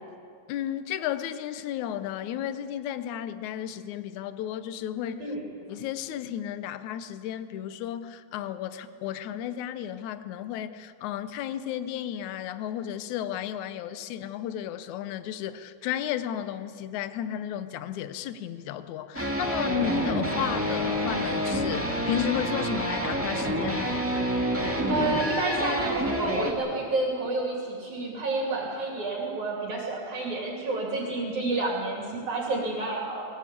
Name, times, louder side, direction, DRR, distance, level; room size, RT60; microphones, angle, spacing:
voice 1, 0.5-5.2 5.7-24.0, left 10 dB, 75° left, 12 dB, 2.2 m, -33 dB
sound 1, 19.1-26.5, equal, 5° right, 1.5 m, -28 dB
sound 2, 19.9-21.6 23.3-26.3, left 3 dB, 30° left, 0.7 m, -44 dB
voice 2, 24.9-33.3, right 2 dB, 65° right, -2 dB, 4.4 m, -29 dB
21.0 x 19.0 x 8.6 m, 2.3 s
omnidirectional pair, 3.6 m